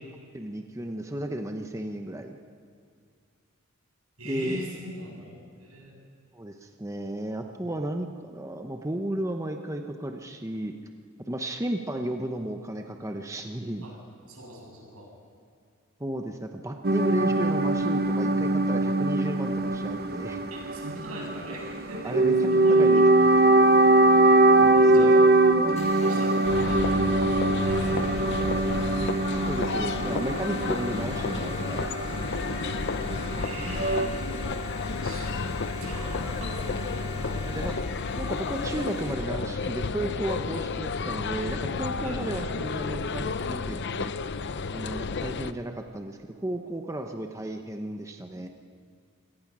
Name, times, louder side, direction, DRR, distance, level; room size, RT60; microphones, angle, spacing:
voice 1, 0.3-2.4 4.2-4.6 6.3-10.7 11.3-13.9 16.0-20.4 22.0-22.4 22.7-23.0 24.6-25.1 29.5-32.0 37.5-37.8 38.2-44.1 44.7-48.5, right 1 dB, 15° right, 4 dB, 0.9 m, -33 dB
voice 2, 4.2-6.0 13.8-13.9 14.3-15.1 20.5-22.2 22.4-23.0 24.7-25.1 25.6-27.0 27.6-28.9 33.4-34.4 35.0-37.6 41.6-42.2, equal, 85° right, -1 dB, 7.5 m, -41 dB
sound 1, 16.8-34.1, right 2 dB, 45° right, 0.9 m, -22 dB
sound 2, 25.8-39.1, equal, 30° left, 6.0 m, -43 dB
sound 3, 26.4-45.5, left 4 dB, 55° left, 0.6 m, -31 dB
27.0 x 18.0 x 6.2 m, 2.3 s
head